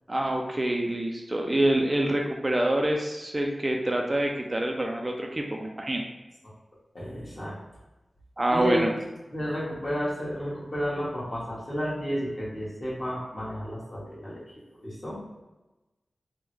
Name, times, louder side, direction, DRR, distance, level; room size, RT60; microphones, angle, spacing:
voice 1, 0.1-6.0 8.4-8.9, right 1 dB, 30° right, 1 dB, 0.3 m, -26 dB
voice 2, 6.9-7.6 8.5-8.9 9.3-14.4 14.8-15.2, equal, 40° left, -7 dB, 1.3 m, -31 dB
3.4 x 2.1 x 3.1 m, 1.1 s
wide cardioid pair, 65°, 0 cm